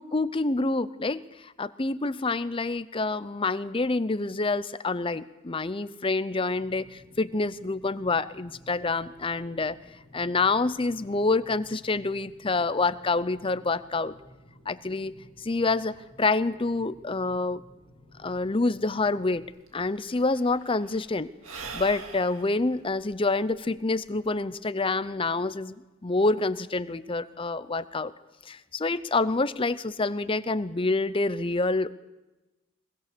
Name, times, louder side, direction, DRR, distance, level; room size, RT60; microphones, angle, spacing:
voice 1, 0.0-9.8 10.1-14.1 14.7-15.1 15.4-17.6 18.2-19.4 19.7-21.3 21.7-25.7 26.0-28.1 28.5-31.9, left 3 dB, 25° left, 14 dB, 0.6 m, -27 dB
sound 1, 6.5-19.4, equal, 30° right, 6.2 m, -54 dB
Sigh / Breathing, 19.4-19.5 19.7-24.4, right 4 dB, 85° right, 2.2 m, -44 dB
23.0 x 20.5 x 6.8 m, 1.0 s
head